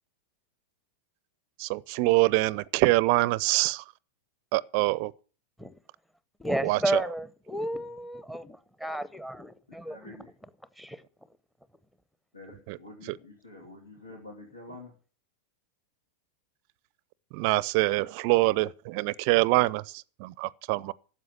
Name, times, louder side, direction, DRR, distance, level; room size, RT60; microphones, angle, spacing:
voice 1, 1.6-3.8 4.5-5.1 6.6-7.0 12.7-12.8 17.3-20.9, right 21 dB, 45° right, 0.5 m, -25 dB
voice 2, 6.4-10.2 10.8-11.0, right 1 dB, ahead, 0.9 m, -32 dB
voice 3, 9.7-10.3 12.3-14.9, left 2 dB, 80° left, 3.4 m, -47 dB
12.5 x 7.9 x 8.2 m
figure-of-eight pair, 90°, 0 cm